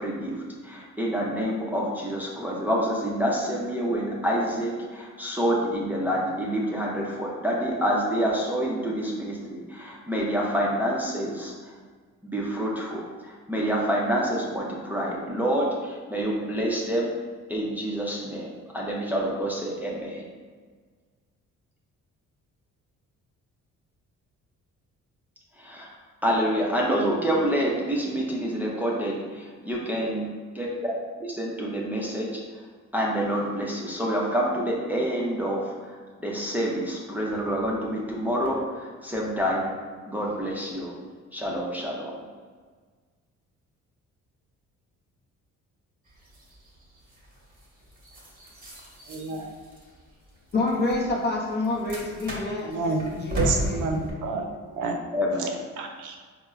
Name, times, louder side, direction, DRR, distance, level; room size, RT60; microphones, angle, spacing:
voice 1, 0.0-11.7 12.2-17.1 17.5-20.3 25.6-26.0 26.2-30.3 30.5-30.9 31.2-32.4 32.9-39.7 40.1-40.9 41.3-42.1 55.1-55.5, equal, 5° right, -4 dB, 0.5 m, -27 dB
sound 1, 46.1-54.1, equal, 30° right, 1.0 m, -36 dB
voice 2, 49.1-49.5 52.7-53.0 53.4-54.4 54.7-54.9 55.8-56.1, right 4 dB, 80° right, 3 dB, 0.5 m, -28 dB
voice 3, 50.5-52.7 53.0-53.9, left 2 dB, 35° left, -2 dB, 0.6 m, -28 dB
4.2 x 2.1 x 2.3 m, 1.5 s
cardioid pair, 90°, 30 cm